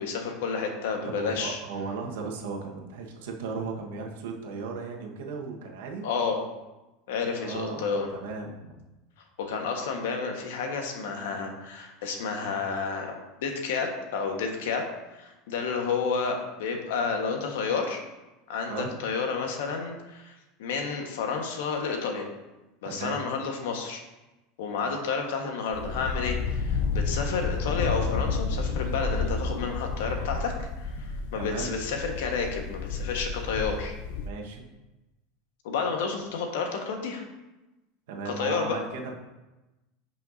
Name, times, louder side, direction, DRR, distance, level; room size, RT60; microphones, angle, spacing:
voice 1, 0.0-1.6 6.0-6.4 7.1-8.1 9.4-13.1 13.4-14.9 15.2-18.0 18.5-20.3 20.6-22.3 22.8-24.0 24.6-33.9 35.6-37.2 38.2-38.8, left 5 dB, 85° left, 3 dB, 1.4 m, -30 dB
voice 2, 1.0-6.0 7.4-7.8 8.1-8.8 18.7-18.9 22.8-23.2 31.4-31.8 34.2-34.7 38.1-39.1, right 4 dB, 80° right, 1 dB, 1.4 m, -36 dB
sound 1, 25.7-34.3, left 4 dB, 60° left, 0.6 m, -31 dB
11.0 x 5.6 x 2.7 m, 1.1 s
supercardioid pair, 165°, 0 cm